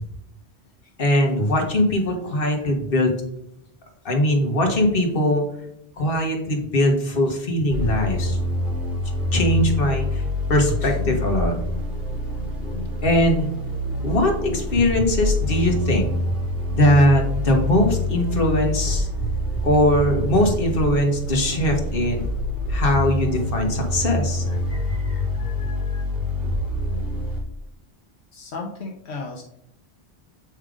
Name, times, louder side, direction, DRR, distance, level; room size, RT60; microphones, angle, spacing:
voice 1, 1.0-3.1 4.0-5.4 6.0-8.4 9.3-10.2 10.5-11.5 13.0-13.5 14.0-16.1 16.7-19.1 19.6-22.2 22.7-26.0, left 1 dB, 60° left, 2 dB, 1.5 m, -21 dB
sound 1, 7.7-27.4, left 1 dB, 65° right, 2.7 m, -26 dB
voice 2, 28.3-29.4, left 3 dB, 80° left, 0 dB, 1.1 m, -34 dB
8.0 x 3.6 x 5.0 m, 0.76 s
omnidirectional pair, 1.1 m